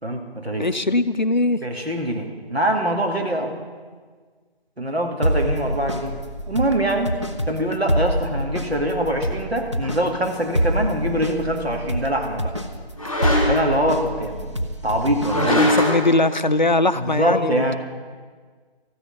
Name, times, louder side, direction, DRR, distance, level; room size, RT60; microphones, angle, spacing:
voice 1, 0.0-0.7 1.6-3.6 4.8-6.2 6.5-7.2 7.5-12.5 13.5-15.7 17.0-17.8, right 1 dB, 80° right, 2 dB, 2.6 m, -24 dB
voice 2, 0.6-1.6 15.3-17.7, left 2 dB, 45° left, 12 dB, 0.5 m, -21 dB
sound 1, 5.2-15.9, equal, 30° right, 0.7 m, -27 dB
sound 2, 9.8-10.0 13.0-13.8 15.2-16.1, left 1 dB, 5° right, 1.1 m, -21 dB
14.0 x 6.7 x 10.0 m, 1.5 s
figure-of-eight pair, 165°, 31 cm